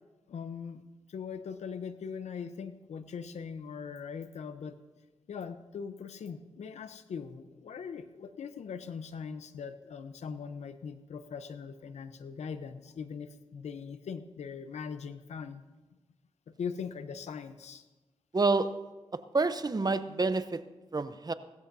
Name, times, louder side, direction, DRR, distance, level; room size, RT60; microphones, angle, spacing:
voice 1, 0.3-0.8 1.1-4.8 5.3-15.6 16.5-17.8, left 6 dB, 85° left, 10 dB, 0.8 m, -41 dB
voice 2, 18.3-18.8 19.1-20.6 20.9-21.3, right 3 dB, 35° right, 12 dB, 0.8 m, -28 dB
18.0 x 14.0 x 2.7 m, 1.2 s
cardioid pair, 50°, 11 cm